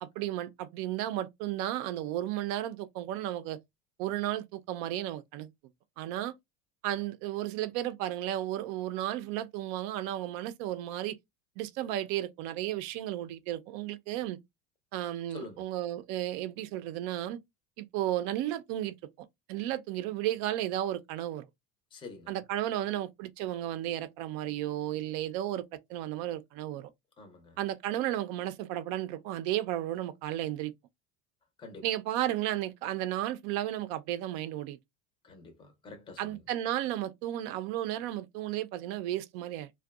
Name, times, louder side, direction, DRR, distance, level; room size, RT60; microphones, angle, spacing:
voice 1, 0.0-3.6 4.0-5.5 6.0-6.3 6.8-11.2 11.6-14.4 14.9-17.4 17.8-21.5 22.3-25.6 25.9-26.9 27.6-30.7 31.8-34.8 36.2-39.7, right 13 dB, 60° right, 0.5 m, -33 dB
voice 2, 15.3-15.6 21.9-22.4 27.2-27.6 31.6-31.8 35.2-36.3, left 3 dB, 10° left, 0.5 m, -47 dB
2.6 x 2.3 x 2.3 m
supercardioid pair, 115°, 41 cm